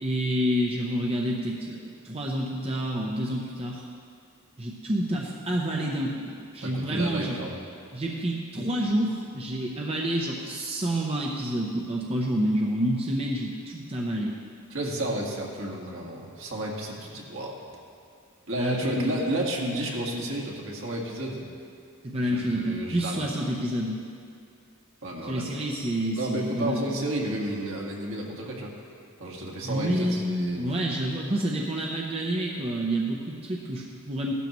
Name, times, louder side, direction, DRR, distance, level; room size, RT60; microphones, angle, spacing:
voice 1, 0.0-3.8 4.6-7.4 7.9-14.3 18.5-19.2 22.0-24.0 25.2-27.0 29.6-34.3, right 1 dB, 30° right, -2 dB, 0.8 m, -28 dB
voice 2, 6.6-7.6 14.7-17.6 18.5-21.5 22.2-23.3 25.0-25.6 26.2-28.7 29.2-30.8, right 1 dB, 65° right, -2 dB, 1.9 m, -32 dB
15.5 x 12.5 x 3.1 m, 2.4 s
head